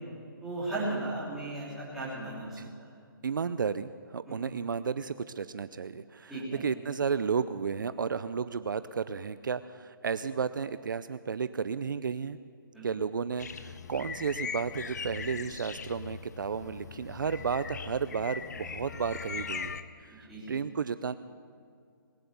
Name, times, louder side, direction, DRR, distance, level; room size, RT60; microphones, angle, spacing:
voice 1, 0.4-2.5 2.8-2.9 4.3-4.4 6.3-6.6 12.7-12.9 20.1-20.5, right 2 dB, ahead, -11 dB, 3.5 m, -36 dB
voice 2, 3.2-12.4 12.8-21.1, right 6 dB, 65° right, 13 dB, 0.5 m, -33 dB
sound 1, 13.4-19.8, left 6 dB, 50° left, 0.7 m, -40 dB
20.5 x 10.0 x 7.0 m, 2.3 s
hypercardioid pair, 175°, 12 cm